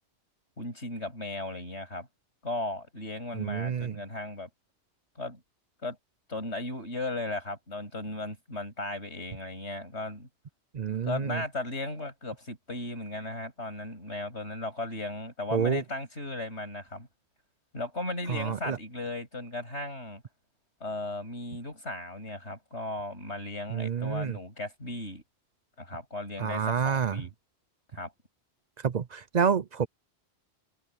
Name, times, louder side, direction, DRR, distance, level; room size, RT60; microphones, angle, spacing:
voice 1, 0.6-2.1 2.4-4.5 5.2-5.4 5.8-6.0 6.3-10.3 10.9-17.1 17.7-20.2 20.8-25.2 25.8-27.3 27.9-28.1, left 2 dB, 75° left, 8.4 m, -36 dB
voice 2, 3.3-3.9 10.7-11.4 15.5-15.8 18.3-18.8 23.7-24.4 26.4-27.2 28.8-29.9, right 7 dB, 50° right, 0.6 m, -28 dB
omnidirectional pair, 1.1 m